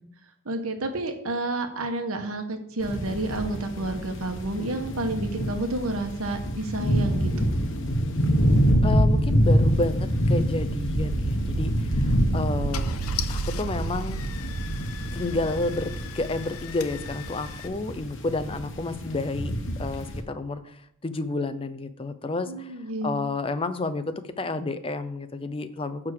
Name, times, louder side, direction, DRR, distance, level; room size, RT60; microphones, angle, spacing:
voice 1, 0.4-7.5 22.5-23.1, right 2 dB, 85° right, 5 dB, 1.2 m, -30 dB
sound 1, 2.8-20.2, equal, 60° left, 1.1 m, -26 dB
sound 2, 5.7-19.3, right 4 dB, 55° right, 0.3 m, -36 dB
voice 2, 8.8-13.0 13.3-14.2 15.1-19.5 19.8-20.8 21.0-22.7 23.0-26.1, left 2 dB, 25° left, 11 dB, 0.6 m, -30 dB
Car / Engine starting, 11.6-11.8 12.4-12.5 12.7-17.7, left 10 dB, 90° left, 0.6 m, -40 dB
9.0 x 3.7 x 6.6 m, 0.71 s
head